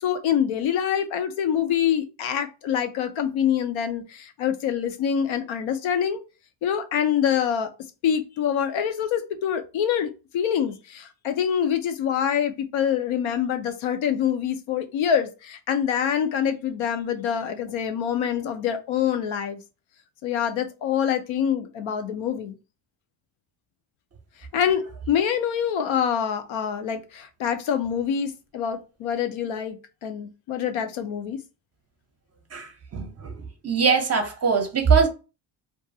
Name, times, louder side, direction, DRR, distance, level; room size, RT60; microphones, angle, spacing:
voice 1, 0.0-6.2 6.6-7.7 8.0-19.6 20.2-22.6 24.5-31.4, left 8 dB, 85° left, 0.7 m, -25 dB
voice 2, 32.5-33.3 33.6-35.1, right 5 dB, 35° right, 0.6 m, -22 dB
2.5 x 2.3 x 2.6 m
cardioid pair, 120°, 46 cm